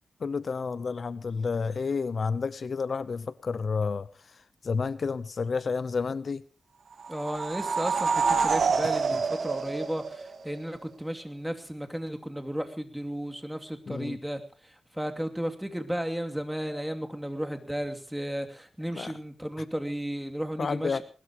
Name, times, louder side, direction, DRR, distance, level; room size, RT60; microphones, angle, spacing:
voice 1, 0.2-4.4 4.6-6.4 8.8-9.2 13.9-14.2 19.0-19.1 20.6-21.0, left 5 dB, 60° left, 0.8 m, -30 dB
sound 1, 7.0-10.6, right 5 dB, 70° right, 2.8 m, -27 dB
voice 2, 7.1-21.0, equal, 5° right, 2.8 m, -34 dB
20.5 x 20.5 x 3.1 m
cardioid pair, 75°, 0 cm